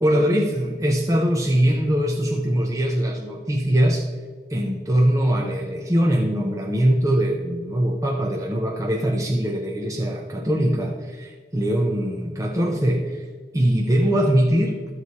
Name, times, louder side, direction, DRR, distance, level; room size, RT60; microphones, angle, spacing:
voice 1, 0.0-4.1 4.5-13.3 13.5-14.8, right 1 dB, 20° right, 0 dB, 0.8 m, -22 dB
12.5 x 6.5 x 4.2 m, 1.5 s
head